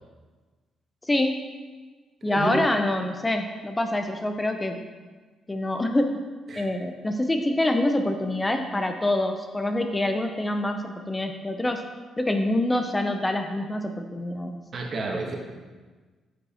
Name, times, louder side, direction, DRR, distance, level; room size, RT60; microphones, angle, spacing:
voice 1, 1.1-1.5 2.2-4.8 5.5-6.1 6.6-11.8 12.2-14.6, left 1 dB, 15° left, 5 dB, 0.6 m, -26 dB
voice 2, 2.3-2.6 6.5-6.7 14.7-15.4, right 2 dB, 50° right, 1 dB, 1.4 m, -30 dB
9.0 x 5.3 x 4.3 m, 1.4 s
cardioid pair, 90°, 0 cm